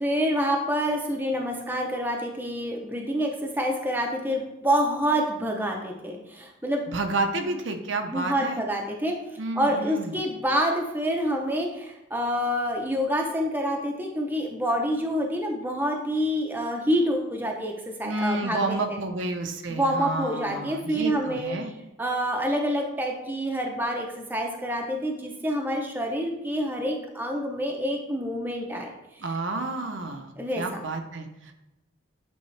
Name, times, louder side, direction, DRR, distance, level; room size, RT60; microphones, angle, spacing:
voice 1, 0.0-6.8 8.1-9.2 9.5-19.0 19.7-21.6 22.0-28.9 30.4-30.8, equal, 10° right, 1 dB, 0.6 m, -27 dB
voice 2, 6.9-8.6 9.4-10.2 18.0-21.7 29.2-31.6, right 2 dB, 65° right, 5 dB, 0.7 m, -30 dB
8.4 x 3.6 x 3.2 m, 0.95 s
head